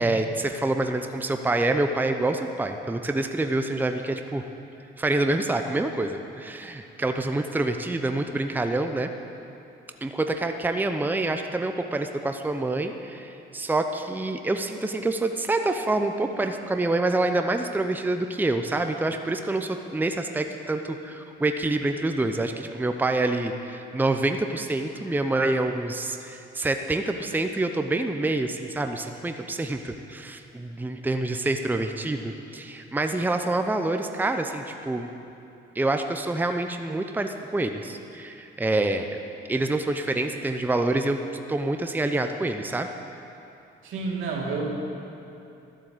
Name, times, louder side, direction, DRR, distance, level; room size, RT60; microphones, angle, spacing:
voice 1, 0.0-4.4 5.0-9.1 10.0-35.1 35.7-39.2 39.5-41.2 41.5-42.9, right 2 dB, 10° right, 6 dB, 0.7 m, -27 dB
voice 2, 43.8-44.8, right 3 dB, 80° right, -2 dB, 2.4 m, -29 dB
12.5 x 7.7 x 7.9 m, 2.7 s
cardioid pair, 90°, 20 cm